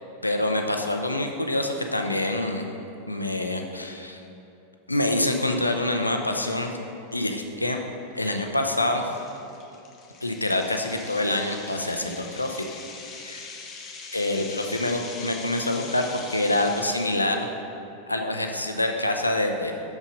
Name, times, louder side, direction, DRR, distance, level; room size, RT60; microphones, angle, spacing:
voice 1, 0.2-2.7 3.1-4.2 4.9-6.7 7.1-7.8 8.1-9.1 10.2-12.6 13.2-13.4 14.1-17.5 18.1-19.7, left 1 dB, 85° left, 4 dB, 0.6 m, -26 dB
sound 1, 7.1-7.2 7.8-7.9 8.4-8.5 9.0-17.3, left 4 dB, 25° left, 0.9 m, -41 dB
6.5 x 6.0 x 5.2 m, 2.8 s
figure-of-eight pair, 90°, 0 cm